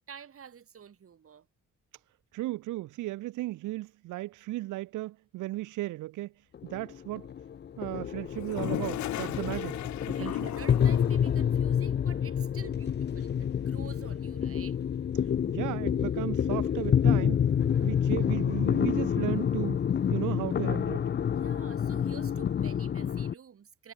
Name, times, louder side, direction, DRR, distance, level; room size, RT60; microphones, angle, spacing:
voice 1, 0.0-1.5 10.1-14.8 21.4-23.9, right 7 dB, 50° right, 3.0 m, -49 dB
voice 2, 2.3-6.3 6.6-7.3 7.8-9.8 10.1-10.5 15.2-17.4 17.8-19.8 20.1-21.1, right 17 dB, 85° right, 0.9 m, -35 dB
sound 1, 6.5-23.3, left 8 dB, 35° left, 0.6 m, -28 dB
Toilet flush, 8.3-11.3, left 14 dB, 70° left, 0.8 m, -36 dB
cardioid pair, 90°, 30 cm